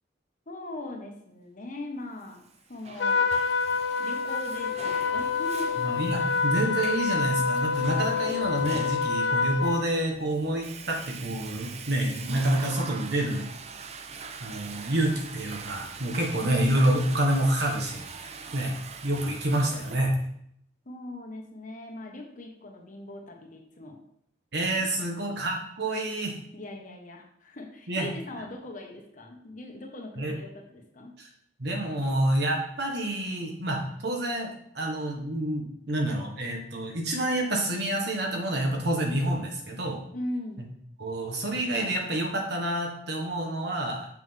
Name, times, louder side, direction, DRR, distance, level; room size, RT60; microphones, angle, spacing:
voice 1, 0.5-2.4 2.7-3.2 4.0-5.8 20.8-24.0 24.8-25.1 26.5-31.1 40.1-40.6, left 1 dB, 45° left, 1 dB, 1.2 m, -40 dB
Water / Toilet flush, 2.5-20.0, right 5 dB, 35° right, 0.5 m, -42 dB
Trumpet, 3.0-9.9, left 5 dB, 70° left, 0.5 m, -27 dB
voice 2, 5.8-13.4 14.4-18.7 19.0-20.1 24.5-26.4 27.9-28.1 30.2-30.3 31.2-31.3 31.6-40.0 41.0-44.1, right 1 dB, 65° right, 1 dB, 1.5 m, -28 dB
6.7 x 6.0 x 3.4 m, 0.71 s
head